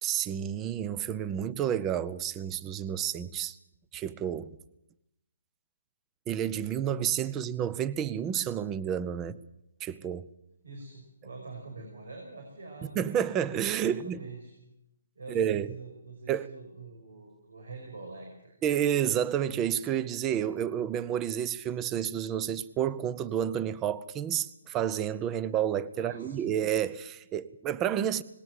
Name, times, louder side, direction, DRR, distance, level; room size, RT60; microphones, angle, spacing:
voice 1, 0.0-3.6 3.9-4.6 6.3-9.4 9.8-10.3 13.0-14.2 15.3-15.7 16.3-16.5 18.6-28.2, right 9 dB, 15° right, 0.7 m, -30 dB
voice 2, 10.6-13.1 13.8-14.5 15.2-18.5 25.9-26.6, right 3 dB, 85° right, 5.8 m, -45 dB
19.5 x 17.5 x 7.6 m
hypercardioid pair, 160°, 0 cm